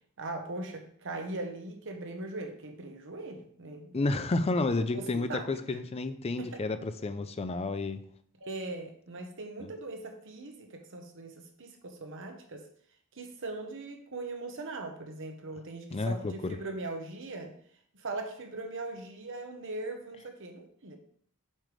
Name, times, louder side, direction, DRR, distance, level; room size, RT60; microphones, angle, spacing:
voice 1, 0.2-4.2 4.9-5.9 6.4-6.6 8.4-12.6 13.1-17.5 17.9-21.0, right 2 dB, 60° right, 4 dB, 1.1 m, -40 dB
voice 2, 3.9-8.0 9.6-9.7 15.9-16.6, left 2 dB, 30° left, 11 dB, 0.4 m, -31 dB
7.4 x 3.3 x 4.9 m, 0.62 s
head